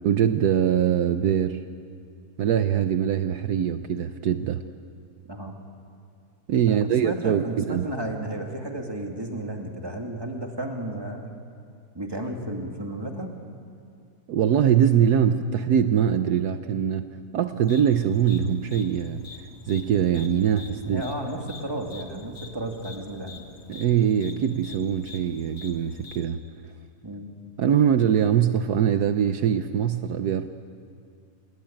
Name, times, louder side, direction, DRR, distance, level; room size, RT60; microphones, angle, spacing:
voice 1, 0.0-1.6 2.4-4.6 6.5-7.9 14.3-17.1 17.3-19.2 19.7-21.0 23.7-26.4 27.6-30.5, right 9 dB, 70° right, 9 dB, 1.3 m, -22 dB
voice 2, 7.0-11.3 11.9-13.3 20.8-23.5 27.0-27.3, right 1 dB, 15° right, 2 dB, 2.5 m, -33 dB
sound 1, 17.6-26.3, left 4 dB, 80° left, 2.5 m, -46 dB
28.5 x 21.0 x 8.9 m, 2.3 s
omnidirectional pair, 1.8 m